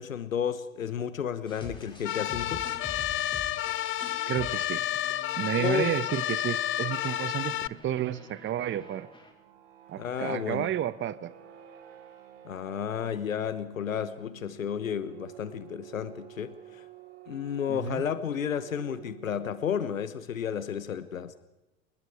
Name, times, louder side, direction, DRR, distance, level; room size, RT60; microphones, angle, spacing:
voice 1, 0.0-2.6 5.6-5.9 10.0-10.7 12.4-16.8 17.3-21.4, left 8 dB, 80° left, 14 dB, 1.4 m, -32 dB
sound 1, 1.5-9.3, left 1 dB, 10° left, 6.2 m, -47 dB
sound 2, 2.1-7.7, left 13 dB, 30° left, 0.7 m, -31 dB
voice 2, 4.3-4.9 5.4-9.1 9.9-11.3 17.7-18.0, right 11 dB, 30° right, 16 dB, 1.0 m, -31 dB
sound 3, 6.2-20.0, right 11 dB, 60° right, 5.5 m, -51 dB
29.5 x 20.5 x 5.0 m, 0.95 s
figure-of-eight pair, 80°, 40 cm